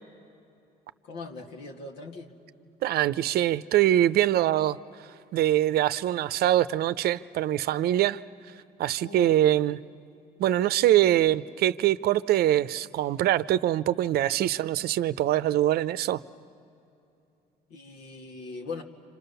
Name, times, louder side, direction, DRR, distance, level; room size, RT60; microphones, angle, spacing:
voice 1, 1.0-2.3 9.0-9.4 17.7-18.8, left 3 dB, 90° left, 2.2 m, -40 dB
voice 2, 2.8-4.8 5.3-8.2 8.8-9.8 10.4-16.2, right 13 dB, 65° right, 0.6 m, -23 dB
29.5 x 26.5 x 6.9 m
cardioid pair, 110°, 17 cm